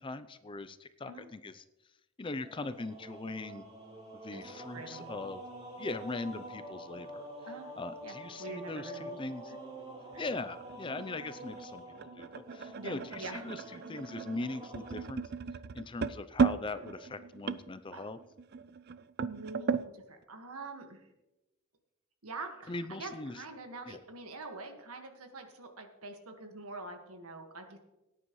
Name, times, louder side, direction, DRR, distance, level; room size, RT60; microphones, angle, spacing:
voice 1, 0.0-1.6 2.2-3.7 4.1-5.4 5.8-7.2 7.8-9.5 10.2-15.2 15.7-18.2 22.7-23.4 23.9-24.0, left 3 dB, 25° left, 12 dB, 0.5 m, -40 dB
sound 1, 2.4-15.0, right 1 dB, 30° right, 3.5 m, -47 dB
voice 2, 4.3-5.1 7.5-7.7 8.0-9.2 10.1-10.3 12.8-13.5 17.9-18.1 19.2-21.1 22.2-27.8, right 3 dB, 85° right, 5 dB, 1.7 m, -45 dB
sound 2, 10.1-19.9, right 5 dB, 45° right, 0.4 m, -36 dB
18.5 x 10.0 x 3.1 m, 0.99 s
head